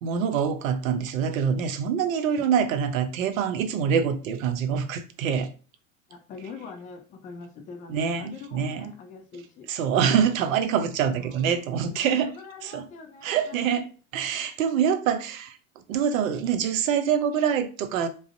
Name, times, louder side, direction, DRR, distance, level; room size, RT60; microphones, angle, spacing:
voice 1, 0.0-5.5 7.9-8.9 9.7-12.3 12.6-12.9 13.2-15.6 15.9-18.1, right 7 dB, 75° right, 0.5 m, -25 dB
voice 2, 6.1-9.7 11.1-13.7, left 4 dB, 20° left, 0.3 m, -44 dB
2.4 x 2.0 x 2.5 m
hypercardioid pair, 85°, 41 cm